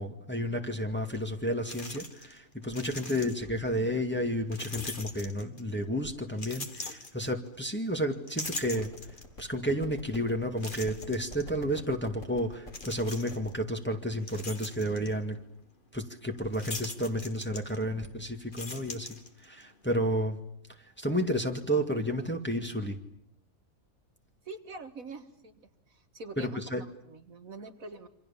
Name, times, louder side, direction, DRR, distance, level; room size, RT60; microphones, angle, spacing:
voice 1, 0.0-8.9 9.4-15.4 15.9-19.1 19.4-20.4 21.0-23.0 26.4-26.8, equal, 5° left, 3 dB, 2.1 m, -31 dB
sound 1, 1.1-1.2 1.7-2.4 2.6-3.6 4.5-5.8 6.3-7.7 8.1-9.4 9.9-10.0 10.6-11.4 12.7-13.5 14.0-15.1 16.5-18.1 18.4-19.6, left 2 dB, 35° left, 2.3 m, -41 dB
sound 2, 8.6-13.6, equal, 55° left, 5.6 m, -48 dB
voice 2, 24.5-28.1, right 3 dB, 65° right, 7 dB, 2.0 m, -45 dB
28.0 x 26.5 x 7.2 m, 0.73 s
omnidirectional pair, 1.6 m